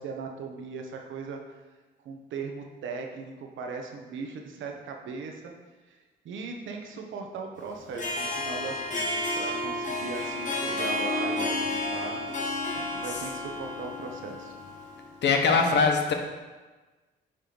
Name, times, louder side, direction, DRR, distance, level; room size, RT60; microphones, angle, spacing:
voice 1, 0.0-1.4 2.0-5.5 5.9-6.0 6.2-12.2 12.7-14.5, right 4 dB, 75° right, 2 dB, 1.2 m, -38 dB
Harp, 7.8-15.1, left 1 dB, 40° left, 1.7 m, -31 dB
voice 2, 15.2-16.1, left 4 dB, 65° left, 3 dB, 1.2 m, -22 dB
8.9 x 3.6 x 6.0 m, 1.3 s
cardioid pair, 90°, 20 cm